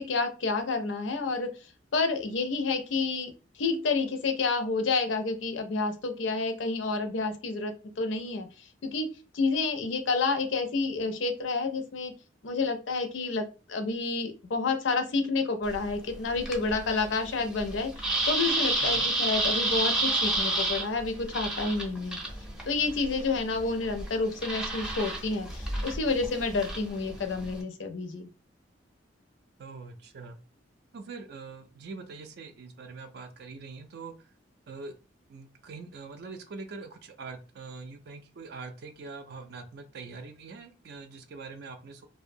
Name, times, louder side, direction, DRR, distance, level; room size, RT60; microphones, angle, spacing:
voice 1, 0.0-1.5 1.9-3.3 3.6-8.5 8.8-9.1 9.3-12.1 12.4-22.2 22.7-28.3, left 3 dB, 80° left, 7 dB, 0.5 m, -29 dB
sound 1, 15.6-27.6, right 2 dB, 5° right, 0.5 m, -31 dB
voice 2, 29.6-30.4 30.9-34.1 34.7-34.9 35.3-42.1, right 4 dB, 60° right, 7 dB, 0.4 m, -43 dB
2.5 x 2.1 x 2.6 m, 0.32 s
head